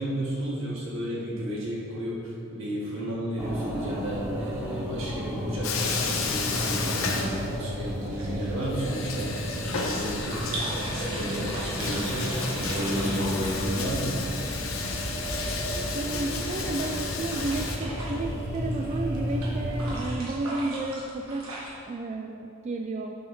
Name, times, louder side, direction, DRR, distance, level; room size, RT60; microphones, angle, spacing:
voice 1, 0.0-14.2, equal, 65° right, -5 dB, 1.9 m, -33 dB
sound 1, 3.4-20.1, equal, 10° right, 1.1 m, -33 dB
Bathtub (filling or washing), 5.6-7.9 8.2-8.3 8.7-17.8, left 4 dB, 70° left, 0.8 m, -33 dB
sound 2, 8.1-21.7, right 1 dB, 80° right, 1.6 m, -39 dB
voice 2, 15.9-21.5 21.9-23.2, right 2 dB, 30° right, 3 dB, 0.3 m, -32 dB
8.3 x 4.1 x 5.7 m, 2.6 s
head